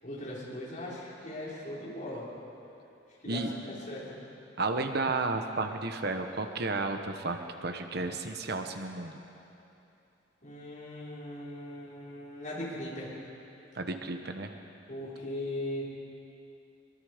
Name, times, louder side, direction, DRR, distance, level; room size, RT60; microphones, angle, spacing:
voice 1, 0.0-2.3 3.2-4.2 10.4-13.1 14.9-15.8, left 1 dB, 40° left, -7 dB, 5.6 m, -39 dB
voice 2, 4.6-9.2 13.7-14.5, right 3 dB, 55° right, 6 dB, 1.2 m, -32 dB
23.5 x 23.5 x 5.1 m, 2.8 s
head